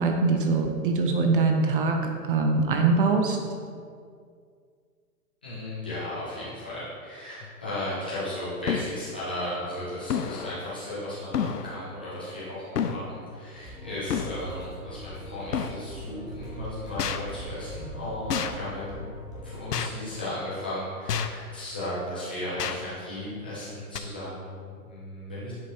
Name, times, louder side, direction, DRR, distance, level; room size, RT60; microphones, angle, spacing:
voice 1, 0.0-2.0 2.3-3.4, right 4 dB, 35° right, 3 dB, 0.6 m, -23 dB
voice 2, 5.4-25.5, left 1 dB, 5° left, -12 dB, 0.3 m, -35 dB
sound 1, 7.4-7.5 8.7-8.9 10.1-10.6 11.3-11.7 12.8-13.1 14.1-14.4 15.5-15.8 17.0-17.2 18.3-18.6 19.7-19.9 21.1-21.4 22.6-22.8 24.0-24.1, left 7 dB, 80° left, 0.7 m, -29 dB
sound 2, 13.5-19.6, equal, 10° right, 1.4 m, -41 dB
10.0 x 5.3 x 2.8 m, 2.2 s
figure-of-eight pair, 120°, 47 cm